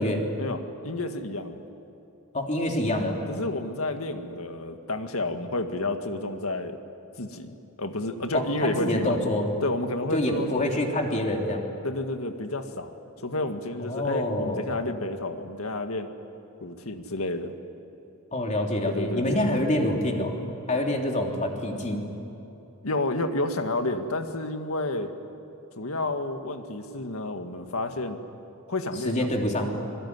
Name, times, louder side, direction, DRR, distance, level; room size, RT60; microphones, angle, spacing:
voice 1, 0.4-1.6 3.3-6.8 7.2-9.2 9.6-10.7 11.8-12.9 13.2-16.1 16.6-17.5 18.8-19.6 22.8-25.1 25.8-28.2 28.7-29.5, left 2 dB, 90° left, 7 dB, 1.9 m, -30 dB
voice 2, 2.3-3.2 8.3-9.5 10.1-11.7 13.8-14.6 18.3-20.3 20.7-22.0 29.0-29.7, left 1 dB, 35° left, 1 dB, 3.3 m, -26 dB
26.0 x 22.0 x 9.7 m, 3.0 s
head